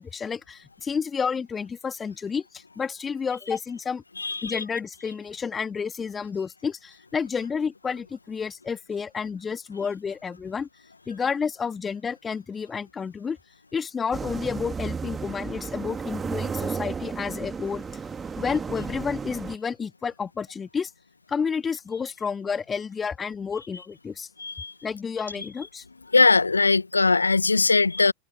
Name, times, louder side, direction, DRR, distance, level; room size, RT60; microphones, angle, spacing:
voice 1, 0.0-4.0 4.4-10.7 11.1-13.4 13.7-17.8 18.4-20.9 21.3-24.3 24.8-25.8, left 6 dB, 20° left, 2.5 m, -30 dB
voice 2, 4.2-4.6 24.4-24.7 26.1-28.1, left 3 dB, 80° left, 1.9 m, -20 dB
sound 1, 14.1-19.6, right 5 dB, 15° right, 2.2 m, -33 dB
figure-of-eight pair, 90°, 0 cm